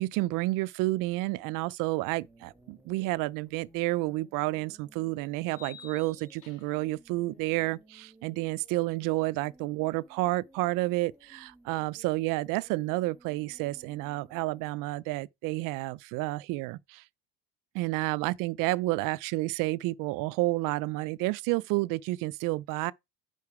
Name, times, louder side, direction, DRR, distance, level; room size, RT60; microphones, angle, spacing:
voice 1, 0.0-17.0 17.7-22.9, right 20 dB, 70° right, 0.5 m, -30 dB
sound 1, 2.1-14.7, right 1 dB, 5° right, 1.5 m, -59 dB
sound 2, 3.8-3.9 5.5-6.9, left 6 dB, 65° left, 1.8 m, -51 dB
9.7 x 4.0 x 4.8 m
cardioid pair, 155°, 33 cm